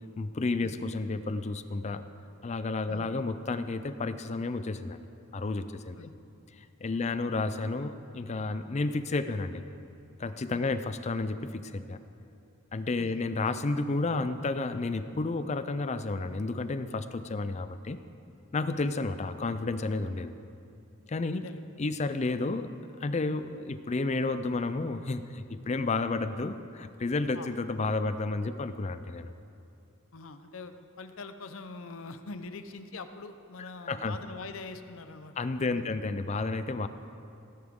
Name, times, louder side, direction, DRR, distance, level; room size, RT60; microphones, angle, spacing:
voice 1, 0.2-2.0 2.4-5.0 5.3-6.1 6.6-9.6 10.2-12.0 12.7-18.0 18.5-20.3 21.1-21.5 21.8-22.7 23.0-29.3 33.9-34.2 35.4-36.9, left 3 dB, 30° left, 11 dB, 0.4 m, -31 dB
voice 2, 21.3-21.7 27.3-27.5 30.1-36.0, left 3 dB, 70° left, 9 dB, 0.7 m, -44 dB
18.0 x 9.8 x 3.7 m, 2.7 s
head